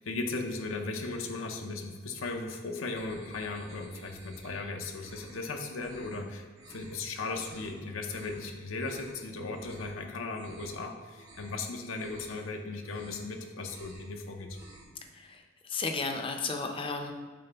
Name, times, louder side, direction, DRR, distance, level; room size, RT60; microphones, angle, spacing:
voice 1, 0.0-14.6, left 3 dB, 85° left, 3 dB, 0.7 m, -37 dB
sound 1, 3.0-4.6 4.9-5.4 5.8-6.2 6.5-6.9 7.3-7.7 8.0-8.4 8.7-9.2 9.5-9.9 10.2-10.8 11.1-11.6 11.9-12.4 12.8-13.3 13.6-14.1 14.4-15.0, right 2 dB, 90° right, 1.4 m, -53 dB
voice 2, 15.1-17.1, left 4 dB, 25° left, 4 dB, 0.5 m, -34 dB
7.6 x 4.2 x 3.4 m, 1.5 s
head